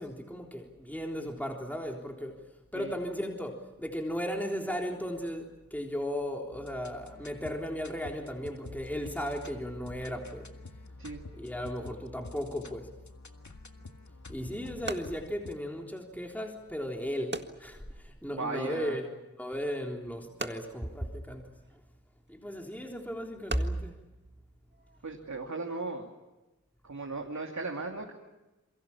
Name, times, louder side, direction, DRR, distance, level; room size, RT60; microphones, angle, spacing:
voice 1, 0.0-2.4 2.7-10.5 11.4-12.9 14.3-19.1 19.4-21.5 22.3-23.9, equal, 5° left, 1 dB, 3.6 m, -35 dB
sound 1, 6.5-15.5, left 2 dB, 75° left, 1.9 m, -48 dB
sound 2, 13.8-25.2, right 3 dB, 40° right, 1.9 m, -46 dB
voice 2, 18.3-19.0 25.0-26.1 26.8-28.1, right 3 dB, 75° right, 1 dB, 2.8 m, -37 dB
28.0 x 23.0 x 7.3 m, 1.0 s
wide cardioid pair, 45°, 29 cm